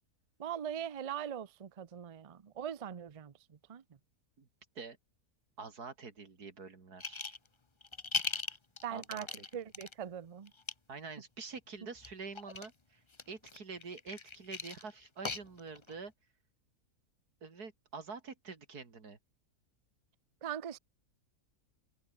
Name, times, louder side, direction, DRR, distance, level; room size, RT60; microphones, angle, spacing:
voice 1, 0.4-3.3 3.7-3.8 8.8-9.3 9.5-10.5 20.4-20.8, right 9 dB, 45° right, 0.4 m, -41 dB
voice 2, 5.6-7.4 8.9-9.5 10.9-16.1 17.4-19.2, right 4 dB, 80° right, 3.3 m, -46 dB
Pill Bottle & Pills, 7.0-7.5 7.8-9.9 10.5-10.7 12.0-12.7 13.1-15.9, left 3 dB, 20° left, 0.9 m, -39 dB
omnidirectional pair, 1.6 m